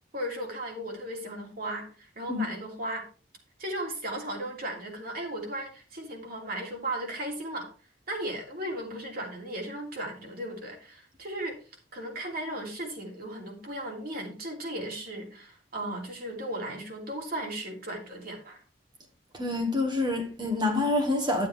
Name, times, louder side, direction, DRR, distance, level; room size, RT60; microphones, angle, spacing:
voice 1, 0.1-3.1 3.6-7.7 8.1-11.6 11.9-18.6, right 1 dB, 50° right, 2.9 m, -36 dB
voice 2, 19.3-21.5, left 2 dB, 25° right, 1.7 m, -27 dB
11.5 x 7.6 x 3.4 m
head